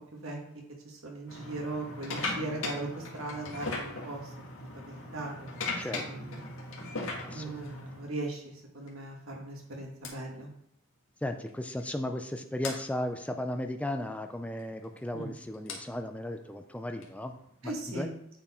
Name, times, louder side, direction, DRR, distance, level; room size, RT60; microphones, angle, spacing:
voice 1, 0.8-4.3 4.7-5.5 5.9-6.5 7.3-10.5 15.1-15.3 17.6-18.1, right 2 dB, 90° right, 0 dB, 1.8 m, -38 dB
sound 1, 1.3-8.1 8.9-9.1 10.0-10.1 11.5-11.6 11.8-12.0 12.6-12.8 14.5-17.7, left 3 dB, 80° left, 1.8 m, -38 dB
voice 2, 7.2-7.7 11.2-17.3 17.6-18.1, left 1 dB, 5° left, 6 dB, 0.4 m, -35 dB
8.7 x 4.5 x 4.3 m, 0.75 s
head